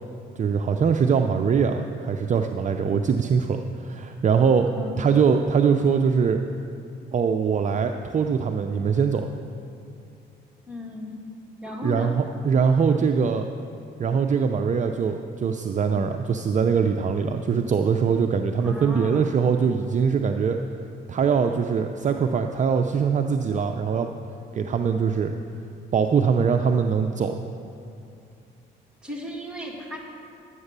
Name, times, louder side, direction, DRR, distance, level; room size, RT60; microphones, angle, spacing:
voice 1, 0.4-4.7 5.0-6.4 7.1-9.3 11.8-13.5 14.0-20.6 21.1-24.1 24.5-25.3 25.9-27.4, right 6 dB, 40° right, 5 dB, 0.5 m, -22 dB
voice 2, 10.7-11.2 11.6-12.2 18.6-19.3 29.0-30.0, left 1 dB, 5° right, -3 dB, 2.4 m, -35 dB
11.0 x 8.0 x 6.7 m, 2.6 s
cardioid pair, 90°, 20 cm